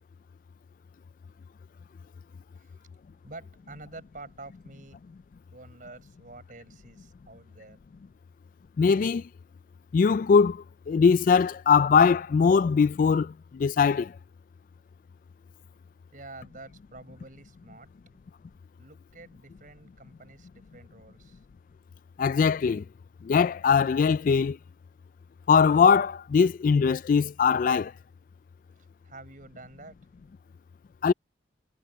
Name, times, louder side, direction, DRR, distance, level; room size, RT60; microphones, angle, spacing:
voice 1, 3.2-5.1 5.5-7.8 16.1-18.2 18.8-21.4 29.0-30.3, right 2 dB, 50° right, 5.3 m, -48 dB
voice 2, 8.8-9.3 9.9-14.1 22.2-22.8 23.2-24.6 25.5-27.9 31.0-31.1, left 6 dB, 50° left, 0.3 m, -21 dB
head